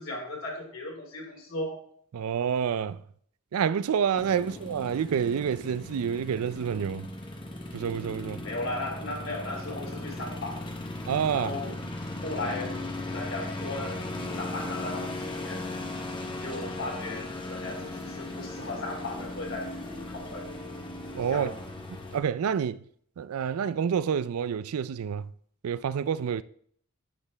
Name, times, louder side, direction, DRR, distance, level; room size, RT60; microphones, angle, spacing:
voice 1, 0.0-1.8 4.4-4.6 8.4-10.6 11.3-11.7 12.2-12.8 13.1-15.6 16.4-20.6 21.3-21.6 22.0-22.1, left 2 dB, 65° left, 3.0 m, -36 dB
voice 2, 2.1-3.0 3.5-7.1 7.7-8.4 11.1-11.5 21.1-21.5 22.1-22.8 23.2-25.3 25.6-26.4, right 7 dB, 80° right, 0.4 m, -28 dB
sound 1, 4.1-22.2, left 2 dB, 25° left, 1.0 m, -37 dB
9.8 x 6.7 x 3.3 m
head